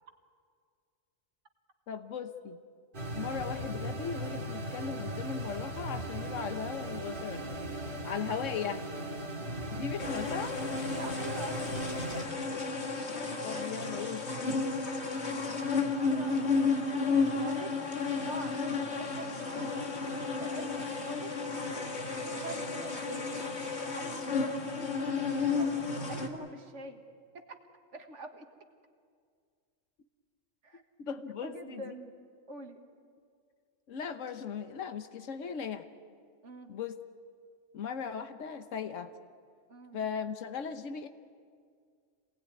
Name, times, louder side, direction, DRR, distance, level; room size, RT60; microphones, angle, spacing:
voice 1, 1.9-2.6 3.1-7.6 8.0-8.9 9.7-10.6 13.4-14.3 31.1-31.8 33.9-35.9 36.7-36.9 37.7-39.1 39.9-41.1, left 6 dB, 75° left, 8 dB, 1.4 m, -37 dB
sound 1, 2.9-12.2, right 1 dB, 40° right, 2.5 m, -38 dB
sound 2, 10.0-26.3, left 4 dB, 60° left, 2.3 m, -32 dB
voice 2, 10.9-12.6 15.3-17.8 18.2-19.9 20.4-21.3 21.6-23.4 23.8-25.7 26.1-27.0 27.3-27.6 27.9-28.5 30.6-30.8 31.4-32.1 32.5-32.8 36.4-36.7 39.7-40.0, right 2 dB, 70° right, 5 dB, 2.0 m, -45 dB
27.0 x 19.0 x 9.5 m, 2.1 s
omnidirectional pair, 1.3 m